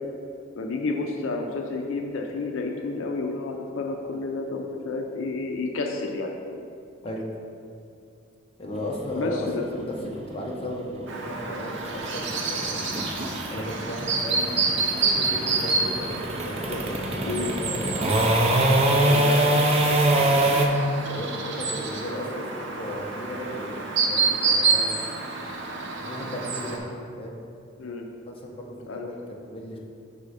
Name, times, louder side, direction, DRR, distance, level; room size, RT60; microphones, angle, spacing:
voice 1, 0.5-6.7 9.1-10.2 17.3-17.5 19.1-19.3 27.8-28.1 28.9-29.1, left 3 dB, 75° left, 2 dB, 0.5 m, -30 dB
voice 2, 8.6-13.2 13.5-16.1 16.4-17.9 18.8-20.6 21.1-24.9 26.0-26.9 27.2-27.4 28.3-29.8, equal, 30° left, -1 dB, 0.8 m, -35 dB
sound 1, 8.7-20.7, right 1 dB, 30° right, 0.5 m, -24 dB
Chirp tweet, 11.1-26.8, right 4 dB, 65° right, 0.7 m, -28 dB
5.4 x 4.0 x 4.8 m, 2.4 s
head